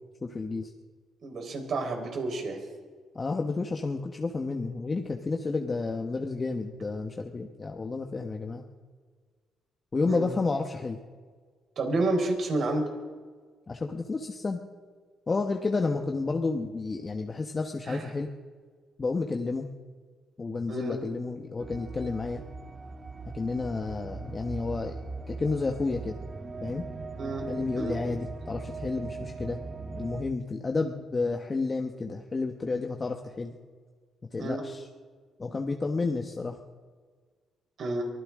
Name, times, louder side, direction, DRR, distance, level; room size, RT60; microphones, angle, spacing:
voice 1, 0.2-0.7 3.1-8.7 9.9-11.0 13.7-14.6 15.3-18.3 19.0-19.7 20.4-22.4 23.3-25.0 25.3-26.2 26.6-26.9 27.5-29.6 30.0-33.5 34.3-34.9 35.4-36.6, left 3 dB, 30° left, 3 dB, 1.2 m, -31 dB
voice 2, 1.2-2.6 10.1-10.3 11.8-12.8 17.9-18.0 20.7-21.0 27.2-27.4 27.8-27.9 34.4-34.6 37.8-38.0, right 2 dB, 60° right, 3 dB, 4.5 m, -29 dB
sound 1, 21.6-30.2, right 4 dB, 30° right, 1.4 m, -39 dB
23.5 x 15.5 x 3.7 m, 1.6 s
cardioid pair, 90°, 0 cm